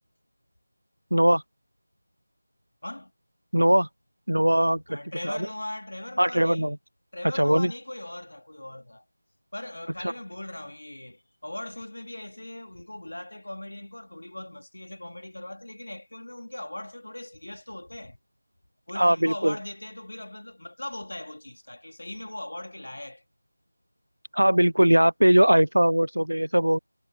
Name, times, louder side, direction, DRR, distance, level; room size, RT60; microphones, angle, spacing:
voice 1, 1.1-1.4 3.5-3.9 4.3-5.0 5.2-5.5 6.2-6.8 7.3-7.7 10.0-10.1 19.0-19.6 24.3-26.8, equal, 80° right, 0.4 m, -20 dB
voice 2, 4.6-6.7 7.1-9.0 9.5-18.2 18.9-23.2, left 1 dB, 60° left, 2.5 m, -39 dB
figure-of-eight pair, 170°, 0 cm